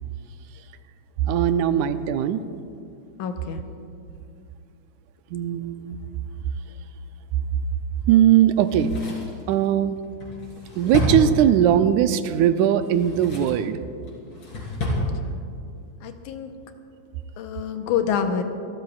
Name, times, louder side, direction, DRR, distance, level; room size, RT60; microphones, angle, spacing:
voice 1, 1.2-2.4 5.3-6.0 8.1-8.9 9.5-10.0 10.8-13.8, right 10 dB, 80° right, 10 dB, 1.9 m, -19 dB
voice 2, 3.2-3.6 16.0-16.5 17.4-18.4, left 7 dB, 85° left, 6 dB, 2.4 m, -26 dB
Drawer open or close, 8.6-11.9 12.7-13.7 14.1-15.1 15.4-15.5, left 1 dB, 40° left, 4.0 m, -30 dB
27.5 x 13.0 x 2.4 m, 2.5 s
omnidirectional pair, 3.5 m